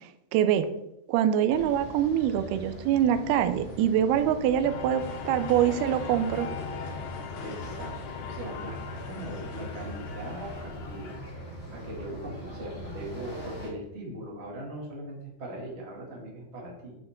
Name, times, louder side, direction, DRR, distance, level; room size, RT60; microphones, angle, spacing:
voice 1, 0.3-0.7 1.1-6.5, right 10 dB, 85° right, 10 dB, 2.3 m, -24 dB
sound 1, 1.5-13.7, equal, 20° left, 1.8 m, -41 dB
sound 2, 4.6-11.2, left 8 dB, 80° left, 2.9 m, -42 dB
sound 3, 5.0-10.7, left 4 dB, 60° left, 2.8 m, -45 dB
voice 2, 7.4-7.9 8.2-11.1 11.7-16.9, right 1 dB, 30° right, -2 dB, 1.2 m, -40 dB
8.8 x 8.0 x 3.7 m, 0.83 s
omnidirectional pair, 5.4 m